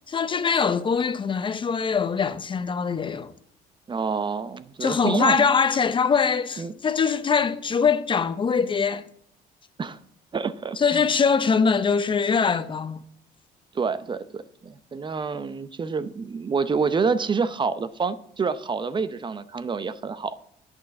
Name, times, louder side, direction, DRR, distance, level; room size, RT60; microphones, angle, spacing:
voice 1, 0.1-3.3 4.8-9.1 10.8-13.0, left 6 dB, 30° left, 0.7 m, -23 dB
voice 2, 3.9-5.5 6.6-6.7 9.8-10.0 10.3-11.0 13.7-20.4, right 5 dB, 30° right, 0.7 m, -27 dB
8.9 x 6.6 x 8.1 m
cardioid pair, 110°, 17 cm